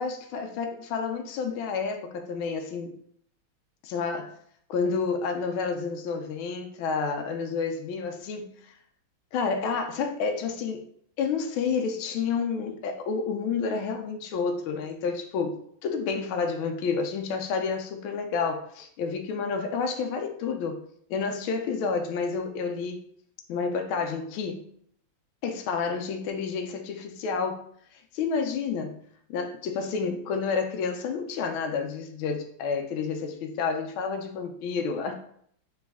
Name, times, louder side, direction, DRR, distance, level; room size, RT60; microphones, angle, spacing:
voice 1, 0.0-2.9 3.8-4.4 4.7-8.6 9.3-10.8 11.2-20.8 21.1-23.0 23.5-24.7 25.4-27.6 28.1-29.0 29.3-35.1, left 5 dB, 80° left, 4 dB, 1.4 m, -30 dB
4.1 x 3.0 x 3.5 m, 0.65 s
omnidirectional pair, 2.3 m